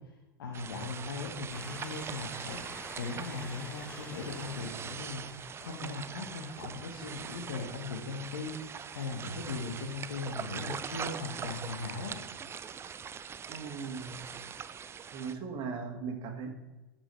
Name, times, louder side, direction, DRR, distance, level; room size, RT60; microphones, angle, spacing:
voice 1, 0.4-12.2, left 3 dB, 75° left, -1 dB, 1.5 m, -39 dB
sound 1, 0.5-15.3, right 7 dB, 20° right, 0.5 m, -42 dB
Train, 1.5-12.7 13.4-13.5 13.7-13.8, left 2 dB, 15° left, 1.1 m, -53 dB
voice 2, 13.5-14.6 15.1-16.5, right 5 dB, 40° right, 4 dB, 1.9 m, -39 dB
12.5 x 6.1 x 3.3 m, 1.1 s
hypercardioid pair, 95°, 12 cm